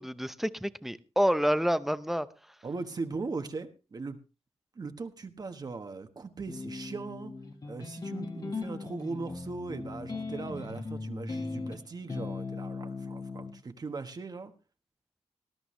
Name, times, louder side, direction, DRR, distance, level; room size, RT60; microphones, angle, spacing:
voice 1, 0.0-2.3, equal, ahead, 0.7 m, -28 dB
voice 2, 2.6-4.2 4.7-7.3 7.6-14.5, right 3 dB, 35° right, 1.2 m, -39 dB
sound 1, 6.5-13.5, left 3 dB, 35° left, 1.6 m, -38 dB
19.5 x 13.5 x 3.2 m
wide cardioid pair, 155°, 11 cm